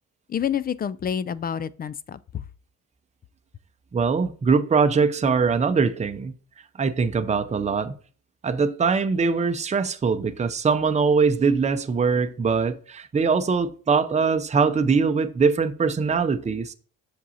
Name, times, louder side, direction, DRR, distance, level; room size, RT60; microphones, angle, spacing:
voice 1, 0.3-2.4, left 8 dB, 30° left, 0.4 m, -28 dB
voice 2, 3.9-6.3 6.8-7.9 8.4-16.7, right 5 dB, 25° right, 0.6 m, -22 dB
7.3 x 6.1 x 2.8 m
cardioid pair, 90°, 30 cm